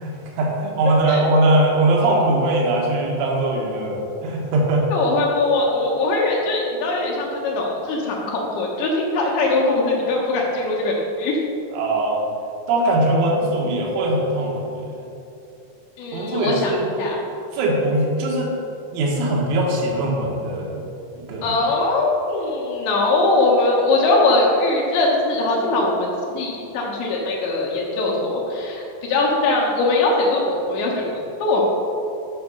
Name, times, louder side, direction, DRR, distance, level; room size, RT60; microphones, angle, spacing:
voice 1, 0.0-4.9 11.7-12.2 12.7-15.1 16.1-16.9 17.5-18.5 18.9-20.9 21.1-21.6, right 1 dB, 85° right, -2 dB, 4.0 m, -21 dB
voice 2, 0.9-1.2 4.9-11.4 16.0-17.2 21.4-31.7, left 2 dB, 75° left, -3 dB, 3.5 m, -21 dB
11.0 x 6.0 x 5.4 m, 2.8 s
omnidirectional pair, 5.3 m